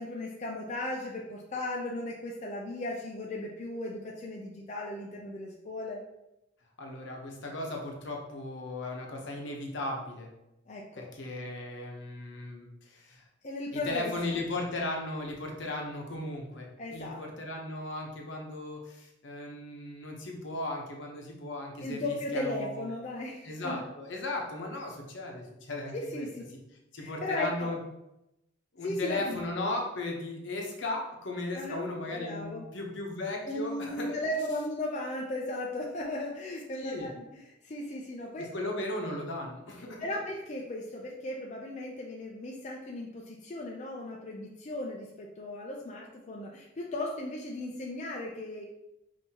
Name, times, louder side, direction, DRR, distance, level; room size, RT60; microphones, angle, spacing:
voice 1, 0.0-6.0 10.7-11.0 13.4-14.1 16.8-17.2 21.8-23.8 25.9-26.4 27.0-27.7 28.8-29.5 31.5-31.8 32.1-32.6 33.4-38.5 40.0-48.6, left 1 dB, 35° left, -2 dB, 0.4 m, -36 dB
voice 2, 6.8-10.3 11.0-13.2 13.7-22.9 23.4-26.3 26.9-27.8 28.7-34.2 36.7-37.1 38.4-40.1, left 2 dB, 70° left, 0 dB, 0.8 m, -36 dB
5.5 x 2.7 x 2.8 m, 0.90 s
head